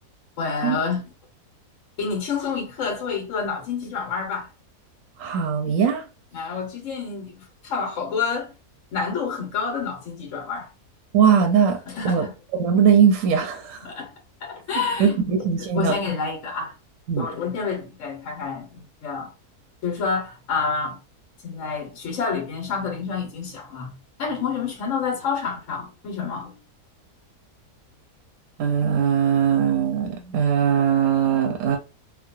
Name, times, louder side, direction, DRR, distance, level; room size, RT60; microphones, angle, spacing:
voice 1, 0.4-1.0 2.0-4.5 6.3-8.5 8.9-10.7 11.9-12.3 13.8-14.1 14.4-16.7 17.2-19.3 19.8-21.0 21.4-23.9 24.2-26.6, left 5 dB, 55° left, 1.4 m, -28 dB
voice 2, 5.2-6.0 11.1-11.8 12.0-12.3 12.5-13.9 15.0-15.9 17.1-17.3 28.6-31.8, right 7 dB, 65° right, 0.9 m, -20 dB
3.1 x 2.3 x 2.5 m
omnidirectional pair, 1.7 m